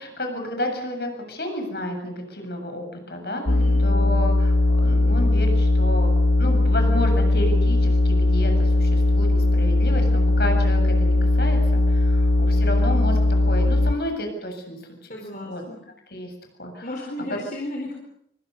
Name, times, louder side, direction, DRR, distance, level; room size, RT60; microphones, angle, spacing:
voice 1, 0.0-3.5 3.8-15.6 16.1-16.3 16.6-16.9 17.3-17.4, left 1 dB, 60° left, 4 dB, 7.5 m, -31 dB
sound 1, 3.5-13.9, left 2 dB, 85° left, 1.2 m, -19 dB
voice 2, 3.5-3.8 15.1-15.8 16.8-17.9, left 1 dB, 45° left, 0 dB, 4.4 m, -34 dB
25.5 x 24.5 x 6.7 m, 0.71 s
head